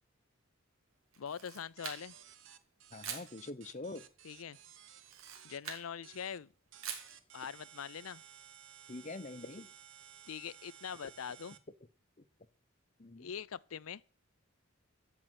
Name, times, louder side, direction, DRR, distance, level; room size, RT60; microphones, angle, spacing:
Camera, 1.1-2.3 3.0-3.3 5.0-5.9 6.8-7.2, right 7 dB, 85° right, 2.9 m, -44 dB
voice 1, 1.2-2.2 4.2-4.6 5.4-6.5 7.3-8.2 10.3-11.6 13.2-14.0, left 7 dB, 85° left, 0.5 m, -43 dB
sound 1, 1.8-5.6 6.0-6.4 6.7-11.6, right 9 dB, 65° right, 1.2 m, -56 dB
voice 2, 2.9-4.0 8.9-9.7 13.0-13.3, left 2 dB, 35° left, 0.8 m, -44 dB
15.0 x 5.6 x 9.6 m
head